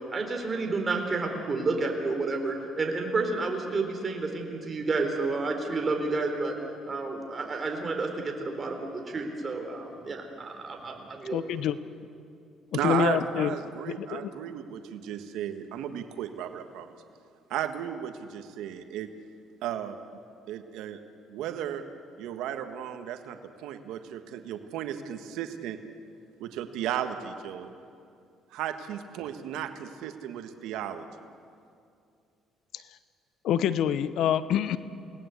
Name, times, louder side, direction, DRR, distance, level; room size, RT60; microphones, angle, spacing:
voice 1, 0.1-6.6 6.9-11.4, right 3 dB, 30° right, 3 dB, 4.1 m, -30 dB
voice 2, 11.3-11.8 12.8-13.5 13.9-14.3 32.7-32.8 33.4-34.8, left 9 dB, 70° left, 14 dB, 0.9 m, -26 dB
voice 3, 12.7-16.9 17.5-19.1 19.6-20.0 20.5-21.0 21.3-21.8 22.2-25.8 26.4-27.7 28.5-31.0, right 10 dB, 85° right, 7 dB, 1.6 m, -34 dB
28.0 x 19.0 x 8.3 m, 2.4 s
cardioid pair, 120°, 0 cm